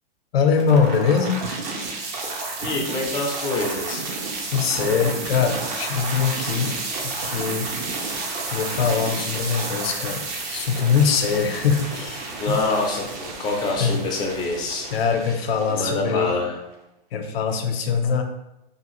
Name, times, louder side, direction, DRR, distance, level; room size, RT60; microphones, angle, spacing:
voice 1, 0.3-1.4 4.5-6.7 7.0-7.7 8.5-10.2 10.5-12.6 13.8-14.0 14.9-16.3 17.1-18.2, left 6 dB, 80° left, 6 dB, 0.6 m, -22 dB
sound 1, 0.5-16.6, right 3 dB, 50° right, 0.7 m, -31 dB
voice 2, 2.6-4.1 12.4-14.9 15.7-16.5, left 2 dB, 15° left, -1 dB, 0.4 m, -26 dB
2.7 x 2.4 x 3.0 m, 0.90 s
hypercardioid pair, 140°, 30 cm